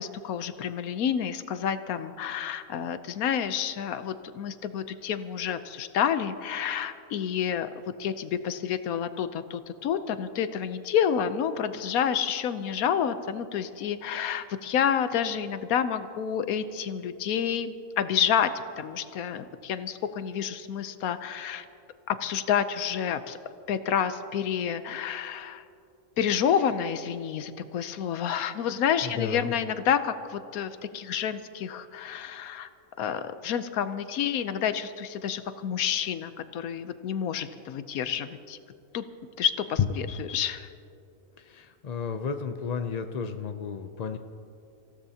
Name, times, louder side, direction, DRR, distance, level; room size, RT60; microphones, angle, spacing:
voice 1, 0.0-7.7 8.0-18.5 18.8-21.6 22.1-23.4 23.7-25.6 26.2-32.7 33.0-38.6 38.9-39.0 39.4-40.7, left 8 dB, 85° left, 11 dB, 1.2 m, -29 dB
voice 2, 29.0-29.5 39.8-39.9 41.4-44.2, left 7 dB, 60° left, 7 dB, 0.4 m, -31 dB
26.5 x 16.0 x 2.8 m, 2.6 s
omnidirectional pair, 1.5 m